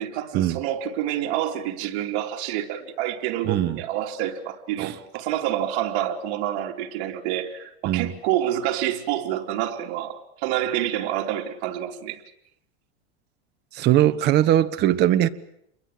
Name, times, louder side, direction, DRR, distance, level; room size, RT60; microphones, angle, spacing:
voice 1, 0.0-12.2, right 11 dB, 55° right, 3.8 m, -28 dB
voice 2, 3.4-3.8 4.8-4.9 7.8-8.1 13.7-15.3, right 13 dB, 30° right, 1.2 m, -20 dB
29.0 x 22.5 x 7.8 m
supercardioid pair, 155°, 32 cm